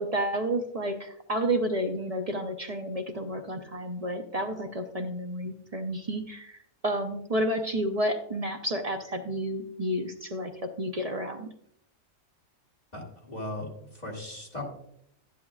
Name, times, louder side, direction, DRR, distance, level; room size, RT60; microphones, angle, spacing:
voice 1, 0.0-6.6 6.8-10.5 10.8-11.5, right 1 dB, 40° right, 4 dB, 0.6 m, -30 dB
voice 2, 12.9-13.7 13.9-14.6, left 1 dB, 30° left, -3 dB, 2.3 m, -37 dB
11.5 x 10.5 x 2.4 m, 0.72 s
omnidirectional pair, 1.4 m